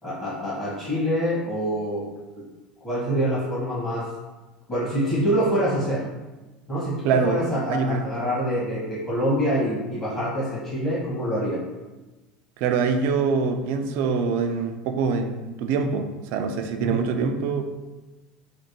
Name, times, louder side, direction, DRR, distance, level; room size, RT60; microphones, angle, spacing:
voice 1, 0.0-2.1 2.3-2.4 2.8-4.1 4.7-6.0 6.7-11.6 16.8-17.0, equal, 20° left, -10 dB, 1.4 m, -25 dB
voice 2, 7.0-8.1 12.6-17.6, right 5 dB, 55° right, 6 dB, 0.3 m, -24 dB
3.3 x 2.1 x 3.1 m, 1.2 s
hypercardioid pair, 75°, 4 cm